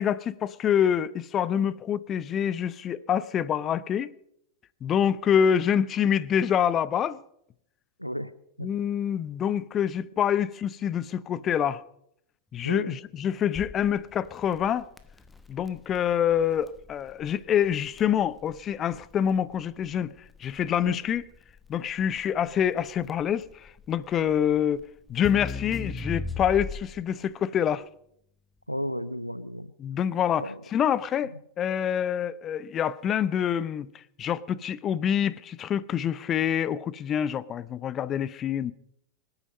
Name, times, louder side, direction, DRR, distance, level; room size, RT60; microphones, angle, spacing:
voice 1, 0.0-4.1 4.8-7.2 8.6-11.8 12.5-14.9 15.5-20.1 20.4-21.3 21.7-24.8 25.1-27.8 29.8-38.7, left 9 dB, 30° left, 0.6 m, -26 dB
voice 2, 8.0-8.3 8.6-8.7 12.6-13.0 20.9-21.0 28.7-29.7 30.4-30.6, equal, 90° left, 0.5 m, -33 dB
Crackle, 13.5-27.1, left 3 dB, 10° left, 0.9 m, -39 dB
24.5 x 9.0 x 5.3 m
figure-of-eight pair, 90°, 0 cm